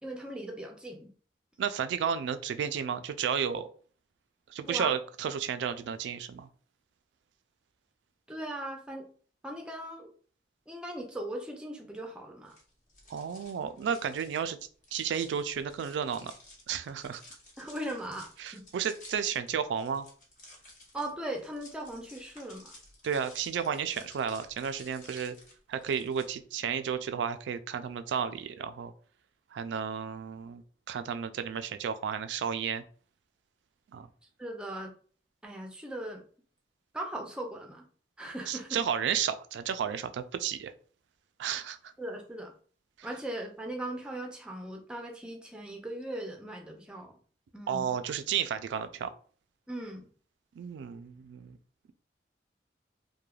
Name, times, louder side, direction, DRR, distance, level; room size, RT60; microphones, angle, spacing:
voice 1, 0.0-1.1 4.7-4.9 8.3-9.1 9.4-10.1 10.7-12.5 17.6-18.6 20.9-22.7 34.4-34.9 35.4-36.2 36.9-37.9 38.2-38.8 42.0-42.5 43.0-47.2 47.5-47.9 49.7-50.1, right 1 dB, 5° right, 1 dB, 0.4 m, -39 dB
voice 2, 1.6-3.6 4.5-6.5 13.1-14.6 14.9-16.3 16.7-17.2 18.4-20.1 23.0-25.4 25.7-28.9 29.5-30.6 30.9-32.8 33.9-34.1 38.5-40.7 41.4-41.8 47.7-49.1 50.6-51.6, right 7 dB, 90° right, 10 dB, 0.3 m, -32 dB
sound 1, 12.4-26.2, left 2 dB, 45° left, 0.9 m, -54 dB
3.1 x 2.2 x 2.3 m, 0.44 s
head